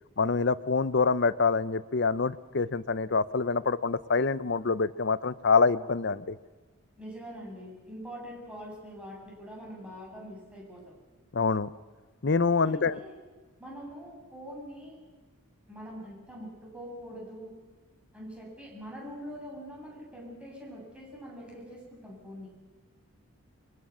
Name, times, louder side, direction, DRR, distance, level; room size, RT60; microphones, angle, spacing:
voice 1, 0.2-6.4 11.3-11.7 12.2-13.0, left 4 dB, 50° left, 15 dB, 0.7 m, -26 dB
voice 2, 7.0-11.0 12.6-13.1 13.6-15.0 15.7-17.5 18.1-22.5, equal, 5° right, -3 dB, 8.0 m, -44 dB
25.0 x 22.5 x 6.3 m, 1.3 s
head